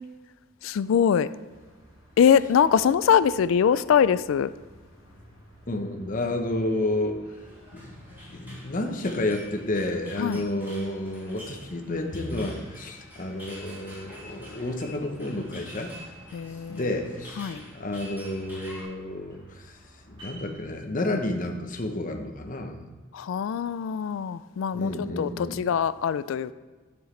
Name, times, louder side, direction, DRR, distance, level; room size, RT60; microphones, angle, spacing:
voice 1, 0.6-1.3 2.2-4.5 10.2-10.4 16.3-16.8 17.4-17.6 23.1-26.5, left 7 dB, 70° left, 16 dB, 0.3 m, -23 dB
sound 1, 1.5-20.5, equal, 25° right, 2.4 m, -54 dB
voice 2, 5.7-7.2 7.7-8.0 8.2-15.9 16.7-19.7 20.1-22.8 24.7-25.6, left 1 dB, 40° left, 4 dB, 0.9 m, -30 dB
sound 2, 7.3-18.8, equal, 10° right, 2.8 m, -47 dB
9.1 x 7.2 x 3.3 m, 1.4 s
head